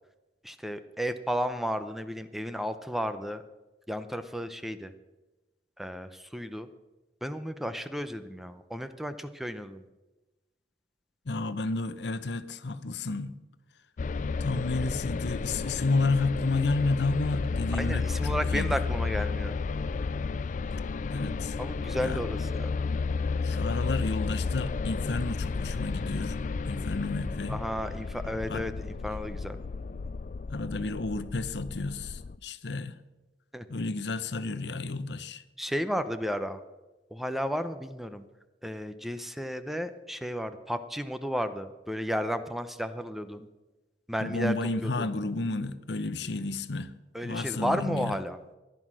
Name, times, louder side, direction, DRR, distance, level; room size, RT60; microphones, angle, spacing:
voice 1, 0.4-3.4 3.9-4.9 5.8-6.7 7.2-9.8 17.8-19.6 21.6-22.8 27.5-29.6 33.5-33.7 35.6-36.6 37.1-38.2 38.6-43.5 44.1-44.5 44.8-45.1 47.1-48.4, equal, ahead, 0.6 m, -33 dB
voice 2, 11.3-13.4 14.4-18.8 21.1-21.6 22.0-22.2 23.4-26.4 26.7-27.6 28.5-28.7 30.5-33.0 33.7-35.4 44.2-46.9 47.2-48.2, left 3 dB, 70° left, 0.8 m, -31 dB
sound 1, 14.0-32.4, left 4 dB, 45° left, 0.4 m, -32 dB
15.0 x 11.0 x 6.2 m
head